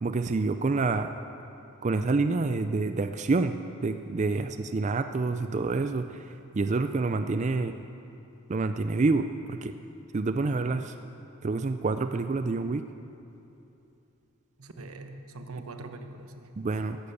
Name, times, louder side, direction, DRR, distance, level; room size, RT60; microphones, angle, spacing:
voice 1, 0.0-1.1 1.8-7.8 8.5-9.7 10.1-10.9 11.4-12.9 16.6-17.1, right 3 dB, 35° right, 9 dB, 0.4 m, -28 dB
voice 2, 14.6-16.5, right 2 dB, 85° right, 6 dB, 1.1 m, -42 dB
15.0 x 11.5 x 7.1 m, 2.8 s
head